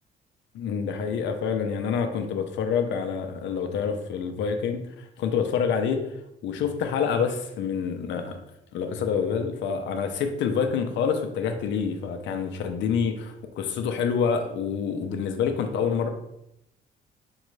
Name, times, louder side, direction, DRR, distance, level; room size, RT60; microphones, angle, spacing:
voice 1, 0.5-6.2 6.4-8.4 8.7-16.1, left 6 dB, 70° left, 6 dB, 0.6 m, -27 dB
5.3 x 2.5 x 3.1 m, 0.82 s
cardioid pair, 130°, 19 cm